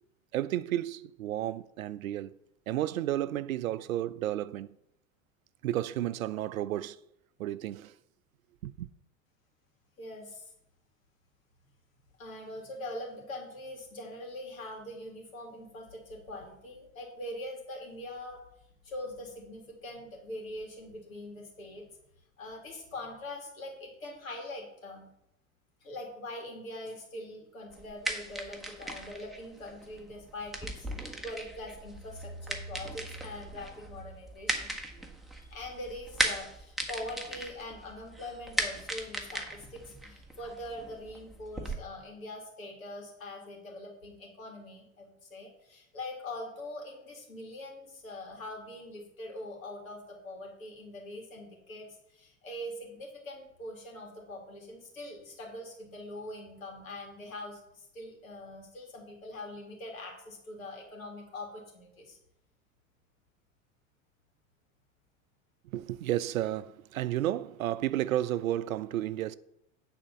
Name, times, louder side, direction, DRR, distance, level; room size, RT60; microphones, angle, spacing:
voice 1, 0.3-2.3 2.7-4.8 5.6-7.0 7.4-7.9 8.6-8.9 65.7-69.3, right 13 dB, 85° right, 0.6 m, -32 dB
voice 2, 10.0-10.5 12.2-18.4 18.8-21.9 22.4-25.1 25.8-34.7 35.4-62.2, left 1 dB, 90° left, 3.0 m, -43 dB
sound 1, 27.7-41.8, right 1 dB, ahead, 1.4 m, -37 dB
9.5 x 4.5 x 6.8 m
hypercardioid pair, 90°, 40 cm